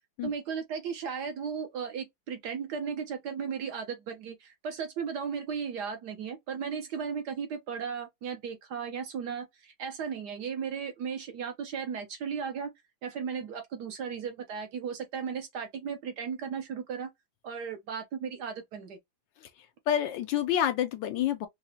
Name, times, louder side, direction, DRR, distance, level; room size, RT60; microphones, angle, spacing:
voice 1, 0.2-12.7 13.0-17.1 17.4-19.0, right 6 dB, 65° right, 1.1 m, -36 dB
voice 2, 19.9-21.5, left 10 dB, 75° left, 1.2 m, -28 dB
4.7 x 2.1 x 2.7 m
omnidirectional pair, 2.2 m